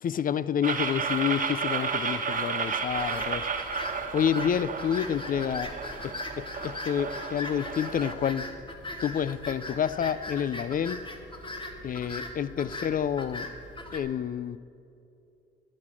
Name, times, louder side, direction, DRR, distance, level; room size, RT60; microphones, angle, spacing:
voice 1, 0.0-3.5 4.1-5.7 6.0-8.5 9.0-11.0 11.8-13.5 13.9-14.6, left 8 dB, 45° left, 17 dB, 0.4 m, -29 dB
sound 1, 0.6-8.1, right 5 dB, 40° right, 1.2 m, -32 dB
sound 2, 2.9-14.0, left 1 dB, 25° left, 1.6 m, -39 dB
11.0 x 11.0 x 6.2 m, 2.7 s
cardioid pair, 90°, 20 cm